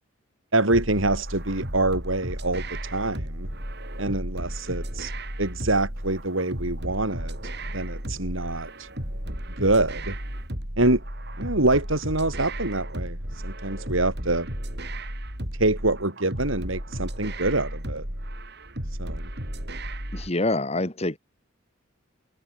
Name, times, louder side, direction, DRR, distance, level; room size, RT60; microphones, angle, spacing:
voice 1, 0.5-3.5 4.0-5.1 5.4-7.4 7.7-8.9 9.6-10.2 10.8-11.0 11.4-13.2 13.4-14.5 15.6-18.1 19.0-19.3, right 2 dB, 70° right, 4.2 m, -25 dB
sound 1, 0.7-20.3, right 1 dB, 50° right, 7.5 m, -34 dB
voice 2, 20.1-21.2, left 2 dB, 30° left, 2.1 m, -26 dB
head